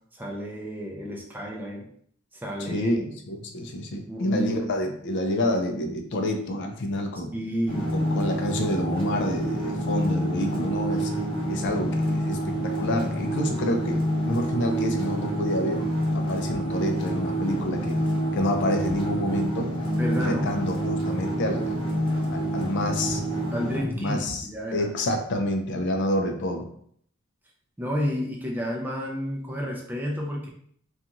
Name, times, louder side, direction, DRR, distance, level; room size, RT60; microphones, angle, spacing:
voice 1, 0.1-1.9 2.3-3.0 4.1-4.6 7.3-7.9 20.0-20.6 23.5-24.9 27.8-30.5, equal, 10° right, -1 dB, 0.4 m, -31 dB
voice 2, 2.6-7.3 7.9-11.1 11.5-15.9 16.1-18.0 18.3-19.7 20.2-21.8 22.3-23.2 23.7-24.5 24.7-26.7, left 1 dB, 55° left, 4 dB, 0.4 m, -28 dB
sound 1, 7.7-23.8, right 1 dB, 25° left, 0.7 m, -27 dB
2.5 x 2.3 x 2.8 m, 0.63 s
head